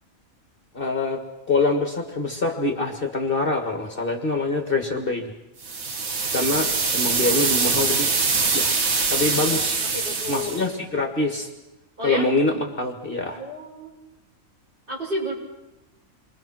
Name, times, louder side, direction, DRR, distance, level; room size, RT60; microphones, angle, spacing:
voice 1, 0.7-1.2 1.5-5.3 6.2-8.1 8.5-8.7 9.1-9.8 10.3-11.5 12.0-13.4, left 2 dB, 40° left, 3 dB, 2.2 m, -25 dB
sound 1, 5.6-10.7, right 4 dB, 75° right, 1.8 m, -23 dB
voice 2, 9.9-10.6 12.0-12.3 13.3-14.0 14.9-15.3, equal, 40° right, -3 dB, 7.5 m, -30 dB
29.0 x 23.5 x 6.2 m, 0.98 s
omnidirectional pair, 1.5 m